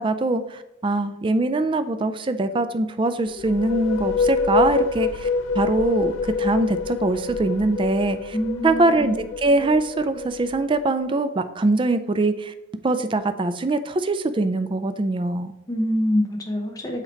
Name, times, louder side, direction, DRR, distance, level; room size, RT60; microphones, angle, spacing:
voice 1, 0.0-5.3 5.6-8.4 8.6-12.5 12.8-15.5, right 2 dB, 25° right, 10 dB, 0.4 m, -22 dB
sound 1, 3.3-10.9, left 5 dB, 85° left, 0.4 m, -26 dB
voice 2, 8.3-9.2 15.7-17.0, left 1 dB, 20° left, 1 dB, 0.9 m, -25 dB
8.0 x 2.9 x 4.4 m, 0.88 s
head